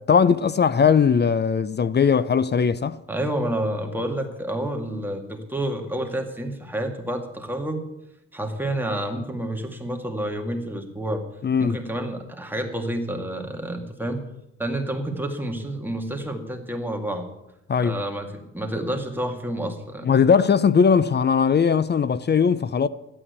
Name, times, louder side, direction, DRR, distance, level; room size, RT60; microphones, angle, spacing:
voice 1, 0.1-3.0 11.4-11.8 17.7-18.0 20.0-22.9, left 6 dB, 35° left, 0.6 m, -19 dB
voice 2, 3.1-7.8 8.3-11.2 11.6-14.2 14.6-17.3 17.8-20.1, right 1 dB, 5° right, 2.2 m, -29 dB
12.5 x 8.7 x 8.2 m
cardioid pair, 95°, 31 cm